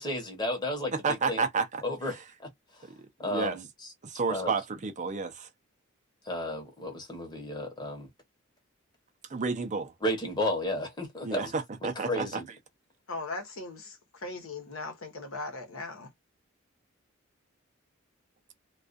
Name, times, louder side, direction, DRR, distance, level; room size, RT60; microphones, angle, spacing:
voice 1, 0.0-0.9 1.3-1.5 1.8-2.2 3.2-3.6 4.3-4.5 6.3-8.1 10.0-11.5 12.0-12.4, left 1 dB, 20° left, 1.0 m, -32 dB
voice 2, 0.9-2.2 2.8-2.9 3.2-3.6 4.0-5.5 9.3-9.9 11.2-12.4, right 4 dB, 35° right, 0.5 m, -31 dB
voice 3, 13.1-16.1, left 3 dB, 70° left, 0.9 m, -39 dB
2.3 x 2.3 x 2.4 m
head